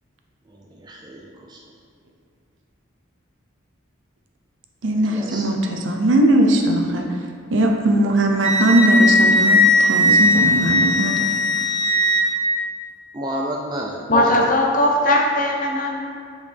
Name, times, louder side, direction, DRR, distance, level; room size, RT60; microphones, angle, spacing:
voice 1, 0.5-1.6 5.0-5.9 13.1-14.1 14.3-14.5, right 1 dB, 20° right, -1 dB, 0.4 m, -32 dB
voice 2, 4.8-7.1 7.5-11.2, right 1 dB, 65° right, 3 dB, 0.6 m, -19 dB
Wind instrument woodwind instrument, 8.4-12.3, left 1 dB, 20° left, 1.1 m, -17 dB
voice 3, 14.1-16.0, left 1 dB, 40° left, 0 dB, 0.7 m, -18 dB
6.2 x 5.3 x 3.5 m, 2.3 s
head